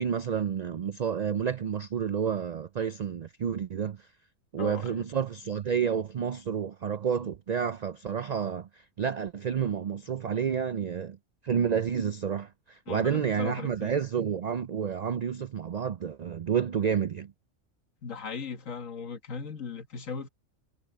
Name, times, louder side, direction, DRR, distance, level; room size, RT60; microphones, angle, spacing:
voice 1, 0.0-4.0 4.5-11.2 11.4-17.3, right 7 dB, 80° right, 0.3 m, -30 dB
voice 2, 4.6-5.1 12.9-14.0 18.0-20.3, left 5 dB, 90° left, 1.9 m, -38 dB
omnidirectional pair, 1.3 m